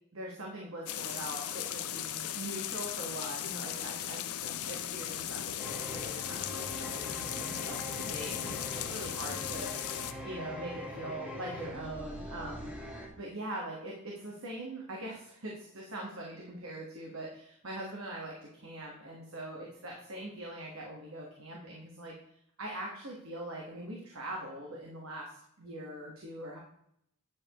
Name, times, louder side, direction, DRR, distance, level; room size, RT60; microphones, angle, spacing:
voice 1, 0.1-12.7 13.2-22.1 22.6-26.6, right 1 dB, 65° right, -2 dB, 1.5 m, -42 dB
sound 1, 0.9-10.1, left 10 dB, 85° left, 0.6 m, -37 dB
sound 2, 5.6-13.1, left 1 dB, 5° right, 2.0 m, -42 dB
9.5 x 7.0 x 3.0 m, 0.73 s
head